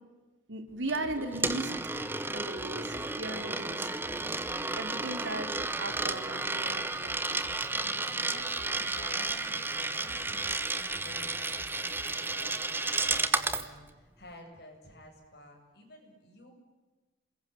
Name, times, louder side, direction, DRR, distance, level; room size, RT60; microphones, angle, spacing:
voice 1, 0.5-1.8 2.3-3.9 4.8-7.4, right 2 dB, 70° right, 6 dB, 4.1 m, -37 dB
Coin (dropping), 0.9-13.7, right 3 dB, 10° right, 1.2 m, -32 dB
sound 1, 1.0-1.6 2.5-3.1 4.0-4.6 5.5-6.1 7.0-7.6 8.5-9.1 10.0-10.6 11.5-12.1 13.0-13.6 14.5-14.6, equal, 10° left, 2.0 m, -53 dB
voice 2, 3.5-4.5 7.7-16.5, left 1 dB, 55° left, 2 dB, 7.9 m, -52 dB
sound 2, 5.8-10.4 10.8-11.3, left 1 dB, 35° right, 6.3 m, -58 dB
28.0 x 21.5 x 9.8 m, 1.2 s
head